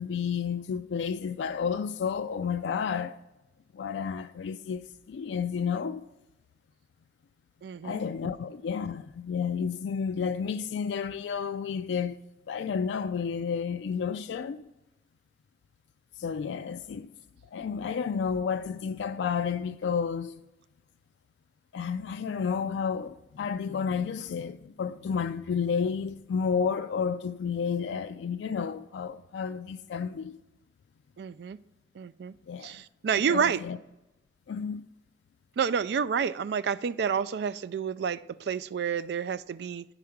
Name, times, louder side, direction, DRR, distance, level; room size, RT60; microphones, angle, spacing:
voice 1, 0.0-3.2 3.7-6.0 7.8-14.6 16.2-17.1 17.5-20.4 21.7-30.4 32.5-32.8 33.1-33.8 34.5-34.8, left 6 dB, 85° left, 0.3 m, -31 dB
voice 2, 7.6-8.0 31.2-31.6 32.0-32.3 32.6-33.6 35.6-39.8, right 7 dB, 70° right, 0.3 m, -29 dB
10.0 x 4.9 x 5.8 m
head